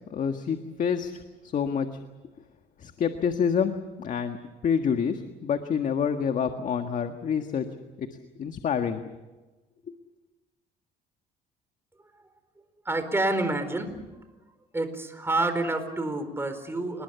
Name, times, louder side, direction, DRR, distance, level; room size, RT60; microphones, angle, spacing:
voice 1, 0.1-1.9 2.8-4.4 4.6-7.7 8.0-8.1 8.4-9.0 9.9-10.0, left 7 dB, 50° left, 6 dB, 1.7 m, -27 dB
voice 2, 12.9-13.9 14.7-17.0, right 2 dB, 15° right, 8 dB, 4.5 m, -28 dB
29.5 x 20.5 x 7.0 m, 1.2 s
cardioid pair, 110°, 17 cm